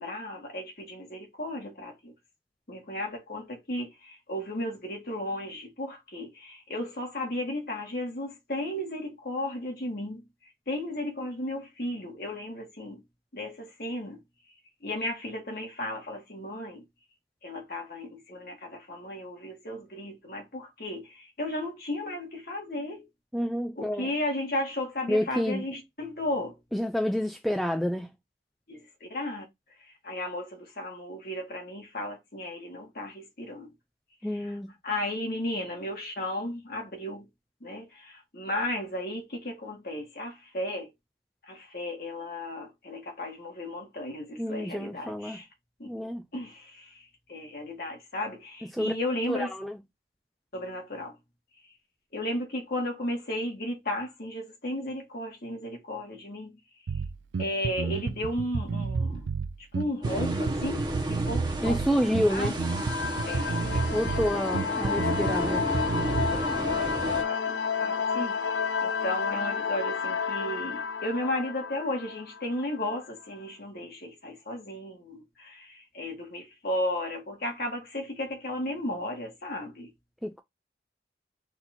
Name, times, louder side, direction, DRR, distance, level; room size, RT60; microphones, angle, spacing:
voice 1, 0.0-2.1 2.7-10.2 10.7-13.0 13.3-14.2 14.8-16.8 17.4-23.1 23.8-26.6 28.7-29.5 29.8-33.7 34.3-34.6 34.8-37.3 37.6-40.9 41.5-45.5 45.8-45.9 46.3-49.5 50.5-51.2 52.1-56.6 57.4-59.3 59.7-61.8 62.3-62.6 63.2-64.3 66.1-68.4 68.8-79.9, left 1 dB, 50° left, 1.8 m, -34 dB
voice 2, 23.3-24.1 25.1-25.6 26.7-28.1 34.2-34.7 44.4-45.4 45.9-46.2 48.7-48.9 49.3-49.8 61.6-62.6 63.9-65.7 80.2-80.4, equal, ahead, 0.4 m, -29 dB
Bass guitar, 56.9-66.5, right 4 dB, 75° right, 0.4 m, -31 dB
sound 1, 60.0-67.2, right 1 dB, 20° right, 1.1 m, -33 dB
sound 2, 62.6-73.0, left 6 dB, 90° left, 0.6 m, -31 dB
4.0 x 2.8 x 4.3 m
head